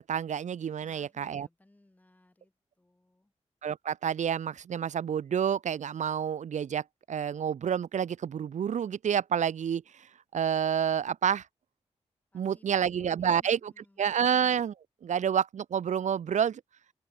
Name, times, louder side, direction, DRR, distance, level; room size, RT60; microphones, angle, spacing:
voice 1, 0.1-1.5 3.6-9.8 10.3-11.4 12.3-13.7 14.0-14.7 15.0-16.6, right 8 dB, 85° right, 0.6 m, -29 dB
voice 2, 0.8-3.3 12.3-14.0, left 1 dB, 15° left, 5.6 m, -63 dB
open air
wide cardioid pair, 170°, 12 cm